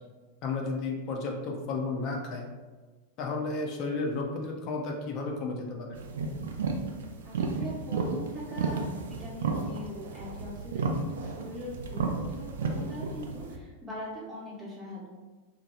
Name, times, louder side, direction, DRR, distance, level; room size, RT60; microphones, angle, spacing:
voice 1, 0.4-2.5 3.2-6.0, left 3 dB, 40° left, 1 dB, 0.4 m, -33 dB
sound 1, 5.9-13.6, right 4 dB, 60° right, 0.3 m, -33 dB
voice 2, 7.2-15.1, left 1 dB, 20° right, -11 dB, 0.9 m, -41 dB
2.8 x 2.2 x 2.9 m, 1.3 s
figure-of-eight pair, 90°, 0 cm